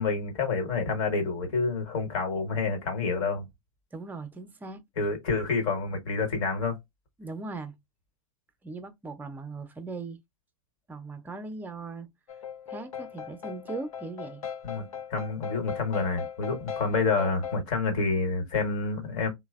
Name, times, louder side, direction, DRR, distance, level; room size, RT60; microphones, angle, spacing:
voice 1, 0.0-3.5 5.0-6.8 14.6-19.3, left 4 dB, 60° left, 1.2 m, -28 dB
voice 2, 3.9-4.8 7.2-7.7 8.6-10.2 10.9-12.1 12.7-14.4, right 3 dB, 10° right, 0.5 m, -39 dB
sound 1, 12.3-17.6, left 8 dB, 75° left, 0.5 m, -39 dB
3.1 x 2.0 x 2.3 m
hypercardioid pair, 105°, 18 cm